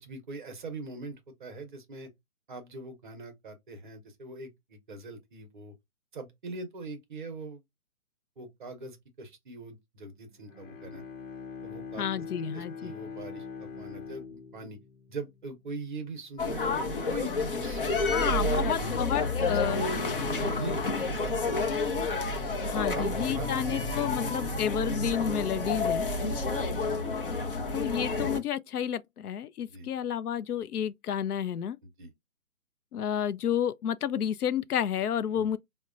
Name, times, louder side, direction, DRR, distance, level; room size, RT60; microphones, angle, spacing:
voice 1, 0.0-2.1 2.5-5.7 6.1-7.6 8.4-11.0 11.6-12.1 12.5-14.8 15.1-18.6 19.4-19.9 20.3-22.0 22.8-23.5 24.3-24.5 26.3-26.6 29.7-29.9 32.0-32.1 35.3-35.5, right 3 dB, 35° right, 0.7 m, -42 dB
Bowed string instrument, 10.3-16.0, left 6 dB, 60° left, 0.9 m, -43 dB
voice 2, 12.0-12.9 18.1-19.8 22.6-26.1 27.7-31.8 32.9-35.6, left 9 dB, 85° left, 0.5 m, -31 dB
sound 1, 16.4-28.4, left 3 dB, 40° left, 0.6 m, -29 dB
4.2 x 2.1 x 2.4 m
hypercardioid pair, 150°, 44 cm